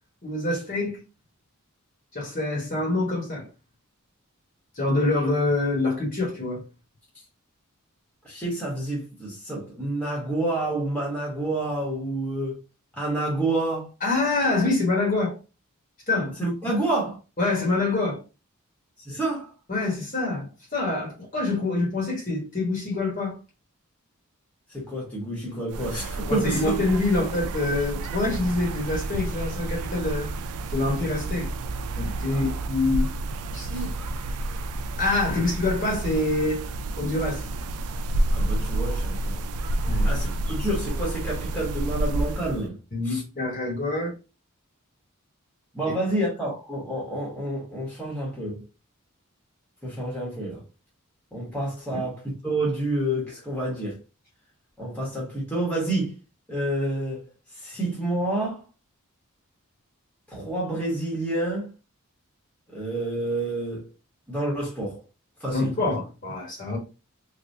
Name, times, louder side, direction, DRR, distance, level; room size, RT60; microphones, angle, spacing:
voice 1, 0.2-1.0 2.1-3.5 4.8-6.6 14.0-15.3 16.1-16.3 17.4-18.2 19.7-20.5 20.7-23.4 26.3-30.3 30.7-31.5 32.0-33.1 33.5-33.9 35.0-36.6 37.0-37.4 39.8-40.1 42.9-44.1 51.9-52.0 65.5-66.8, left 2 dB, 40° left, 1.2 m, -26 dB
voice 2, 8.2-12.6 13.0-13.9 16.4-17.2 19.0-19.5 24.7-26.7 32.3-32.5 33.7-33.9 35.3-35.4 38.3-39.5 40.0-42.8 43.0-43.2 45.7-48.6 49.8-50.6 51.3-54.0 54.8-56.1 56.5-57.3 57.5-58.6 60.3-61.7 62.7-63.9 64.3-65.0 65.4-65.9, right 1 dB, 5° left, 1.2 m, -29 dB
sound 1, 25.7-42.7, right 2 dB, 85° right, 0.4 m, -29 dB
3.3 x 2.4 x 2.6 m
head